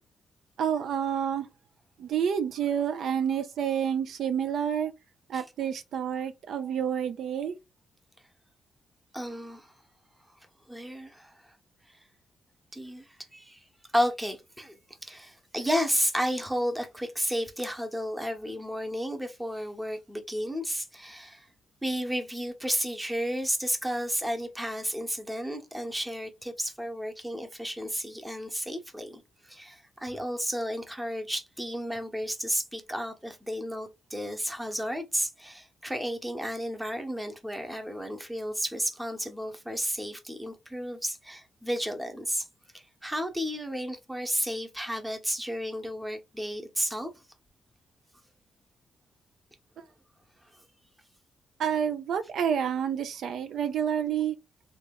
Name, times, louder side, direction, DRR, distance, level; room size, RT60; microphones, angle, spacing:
voice 1, 0.6-1.5 2.0-4.9 5.3-7.6 51.6-54.4, right 8 dB, 75° right, 0.4 m, -29 dB
voice 2, 9.1-9.7 10.7-11.5 12.7-13.6 13.9-14.8 15.0-21.5 21.8-42.5 42.7-47.1, equal, 10° right, 0.9 m, -32 dB
2.9 x 2.3 x 3.5 m
cardioid pair, 75°, 0 cm